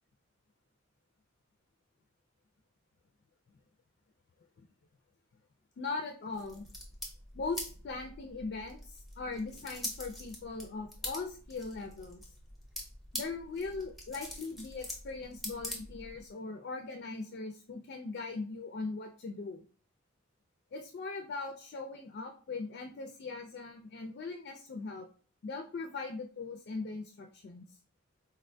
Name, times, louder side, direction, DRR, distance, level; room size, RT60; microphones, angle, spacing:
voice 1, 5.8-6.7 7.3-12.2 13.1-19.6 20.7-25.1 25.4-27.8, left 3 dB, 55° left, 3 dB, 0.3 m, -40 dB
sound 1, 6.3-16.3, left 1 dB, ahead, 0.6 m, -44 dB
3.9 x 2.1 x 2.5 m, 0.42 s
head